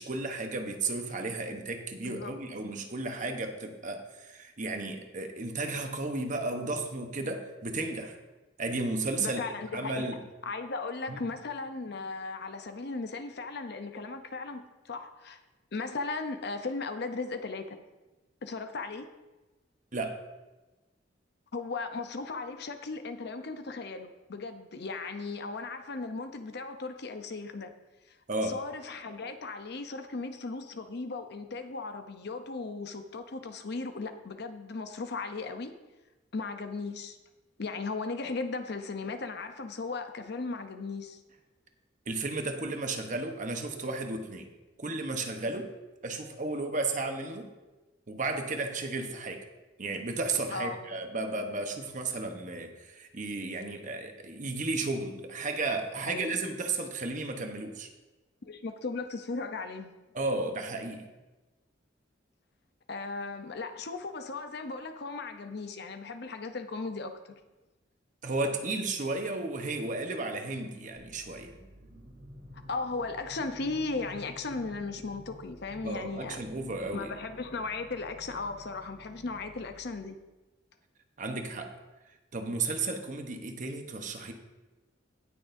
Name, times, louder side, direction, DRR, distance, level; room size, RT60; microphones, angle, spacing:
voice 1, 0.0-8.2 8.6-9.4 9.7-10.2 11.1-11.2 19.9-20.2 28.3-28.6 42.1-44.5 44.8-45.7 46.0-47.5 48.1-49.4 49.8-57.9 60.1-61.1 68.2-71.5 75.8-77.1 81.2-81.7 82.3-84.3, right 3 dB, 45° right, 5 dB, 1.0 m, -33 dB
voice 2, 2.0-2.4 9.2-10.1 10.5-15.4 15.7-17.8 18.4-19.1 21.5-27.7 28.1-28.2 28.4-35.7 36.3-37.2 37.6-41.2 50.5-50.9 56.1-56.4 58.4-59.9 62.9-67.2 72.7-76.4 76.9-80.2, left 3 dB, 60° left, 8 dB, 0.7 m, -37 dB
sound 1, 71.0-80.1, equal, 80° right, 2.0 m, -51 dB
18.0 x 6.2 x 2.6 m, 1.1 s
head